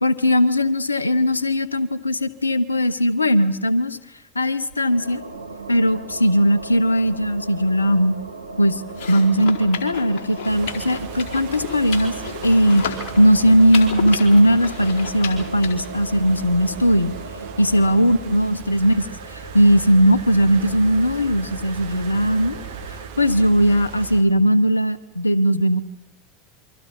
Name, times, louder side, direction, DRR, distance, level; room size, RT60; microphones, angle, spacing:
voice 1, 0.0-4.0 4.3-5.2 5.7-8.1 8.6-8.8 9.1-12.1 12.4-17.1 17.6-19.1 19.5-22.6 23.2-25.8, equal, 85° left, 17 dB, 1.1 m, -18 dB
sound 1, 4.7-23.1, right 3 dB, 85° right, 1.3 m, -37 dB
sound 2, 8.9-15.7, left 6 dB, 55° left, 4.0 m, -33 dB
sound 3, 10.5-24.2, right 7 dB, 65° right, 2.9 m, -38 dB
28.0 x 24.5 x 5.6 m, 0.85 s
figure-of-eight pair, 80°, 0 cm